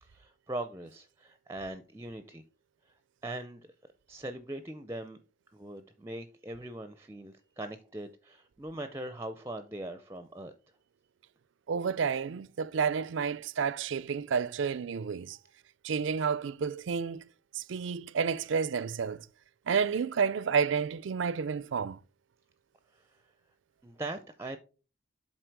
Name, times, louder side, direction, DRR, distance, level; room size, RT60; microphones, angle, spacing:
voice 1, 0.0-2.4 2.9-3.0 3.2-3.7 4.1-5.2 5.5-10.5 22.9-23.2 23.8-24.6, right 1 dB, 15° right, 0.4 m, -41 dB
voice 2, 11.7-15.4 15.8-17.3 17.5-19.3 19.7-22.0, right 6 dB, 75° right, 0.4 m, -30 dB
7.8 x 4.4 x 4.6 m
head